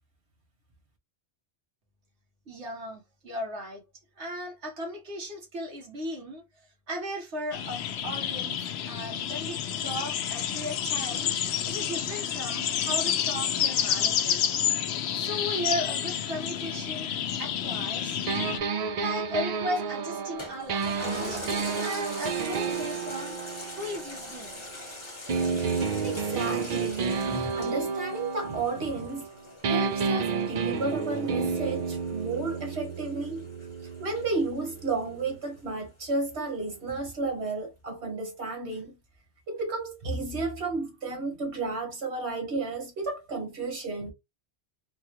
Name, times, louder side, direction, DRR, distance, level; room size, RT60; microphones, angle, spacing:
voice 1, 2.5-3.8 4.2-6.4 6.9-8.6 8.9-11.3 11.6-14.4 15.1-17.1 17.4-18.2 18.9-21.5 21.8-23.4 23.7-24.6, equal, 90° right, 1.7 m, -36 dB
sound 1, 7.5-18.6, left 9 dB, 75° left, 0.8 m, -29 dB
sound 2, 18.3-24.8 25.3-29.3 29.6-35.4, right 5 dB, 55° right, 0.5 m, -31 dB
Toilet flush, 20.4-35.2 35.7-35.8, left 2 dB, 25° left, 1.2 m, -43 dB
voice 2, 26.0-27.1 27.4-29.2 29.7-33.4 34.0-39.0 39.5-44.1, right 3 dB, 70° right, 1.7 m, -32 dB
4.1 x 2.3 x 3.0 m
omnidirectional pair, 1.1 m